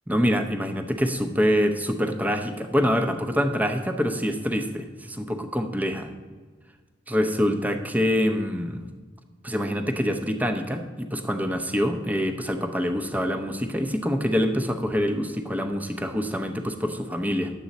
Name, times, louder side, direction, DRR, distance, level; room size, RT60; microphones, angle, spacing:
voice 1, 0.1-6.1 7.1-8.8 9.4-17.5, equal, 10° right, 6 dB, 0.7 m, -25 dB
10.5 x 7.7 x 4.1 m, 1.5 s
head